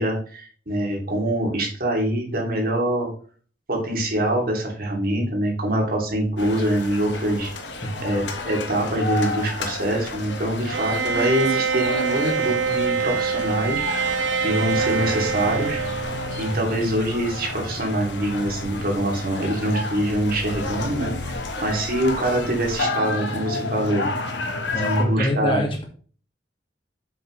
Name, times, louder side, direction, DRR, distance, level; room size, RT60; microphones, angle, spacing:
voice 1, 0.0-3.1 3.7-7.5 8.0-13.8 14.4-15.8 16.3-24.1 24.7-25.6, right 1 dB, 55° right, 0 dB, 2.8 m, -24 dB
sound 1, 6.4-25.0, left 2 dB, 75° left, 1.5 m, -31 dB
Bowed string instrument, 10.7-16.8, right 6 dB, 90° right, 0.9 m, -25 dB
voice 2, 24.7-25.8, left 1 dB, 30° left, 1 dB, 2.1 m, -26 dB
7.7 x 7.3 x 3.2 m, 0.42 s
head